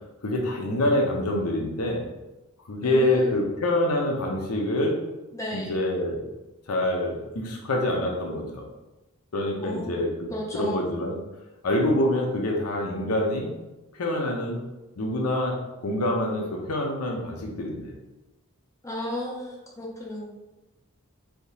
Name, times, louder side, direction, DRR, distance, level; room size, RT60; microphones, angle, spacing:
voice 1, 0.2-2.0 2.7-5.0 5.5-6.2 6.7-8.7 9.3-10.3 10.5-11.1 11.6-13.5 13.9-14.6 15.0-17.9, left 1 dB, 85° left, 1 dB, 0.7 m, -26 dB
voice 2, 2.8-3.4 5.3-5.8 9.6-10.0 10.3-10.8 18.8-20.4, left 1 dB, 15° left, -3 dB, 0.5 m, -34 dB
3.5 x 2.8 x 2.8 m, 1.0 s
head